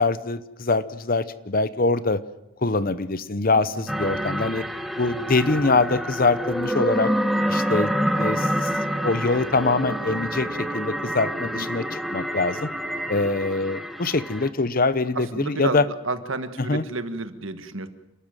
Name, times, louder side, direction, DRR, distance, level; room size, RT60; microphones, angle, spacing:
voice 1, 0.0-2.2 2.6-4.6 5.0-7.1 7.5-8.7 9.0-12.7 13.1-15.9 16.6-16.8, left 3 dB, 40° left, 15 dB, 0.8 m, -24 dB
voice 2, 3.5-3.9 11.4-11.7 15.1-17.9, right 3 dB, 65° right, 10 dB, 1.5 m, -31 dB
sound 1, 3.9-14.5, equal, ahead, 1.2 m, -27 dB
28.5 x 13.0 x 9.0 m, 0.92 s
head